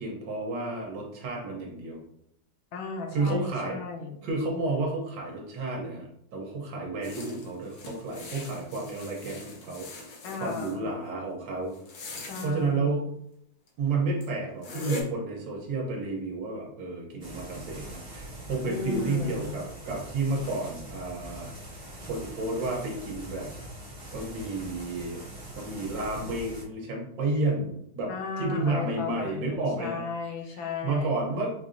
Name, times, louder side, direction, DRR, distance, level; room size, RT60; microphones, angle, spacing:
voice 1, 0.0-2.0 3.1-3.8 4.2-9.9 10.4-11.7 12.4-13.1 13.8-21.5 22.0-23.5 24.1-25.2 25.5-28.1 28.4-30.0 30.8-31.5, right 2 dB, 65° right, -1 dB, 1.4 m, -31 dB
voice 2, 2.7-4.2 10.2-10.9 12.2-13.0 18.6-19.7 28.1-31.2, left 4 dB, 75° left, 2 dB, 1.4 m, -36 dB
sound 1, 7.0-10.8 11.7-12.5 13.7-13.8 14.2-14.3 14.6-15.0, left 2 dB, 60° left, 1.1 m, -41 dB
sound 2, 17.2-26.6, right 1 dB, 25° right, 0.8 m, -43 dB
4.7 x 2.7 x 2.5 m, 0.75 s
omnidirectional pair, 2.2 m